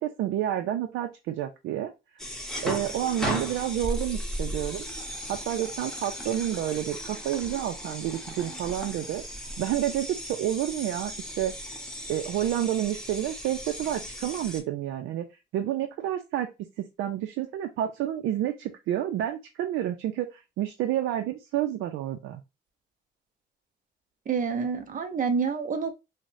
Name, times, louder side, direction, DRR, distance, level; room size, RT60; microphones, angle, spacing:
voice 1, 0.0-1.9 2.6-4.9 5.3-9.2 9.6-11.5 12.1-15.3 15.5-16.5 17.0-22.4, right 12 dB, 90° right, 0.5 m, -29 dB
sound 1, 2.2-14.6, equal, 5° left, 1.0 m, -36 dB
voice 2, 24.3-25.9, right 5 dB, 40° right, 0.7 m, -28 dB
4.7 x 2.1 x 2.6 m
cardioid pair, 90°, 20 cm